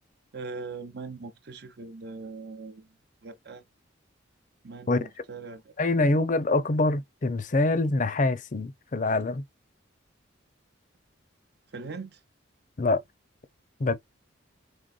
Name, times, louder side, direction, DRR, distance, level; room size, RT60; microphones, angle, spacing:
voice 1, 0.3-2.9 3.2-3.6 4.6-6.1 11.7-12.1, right 4 dB, 60° right, 0.7 m, -40 dB
voice 2, 5.8-9.4 12.8-13.0 13.8-13.9, left 2 dB, 40° left, 0.6 m, -25 dB
5.3 x 3.4 x 2.4 m
head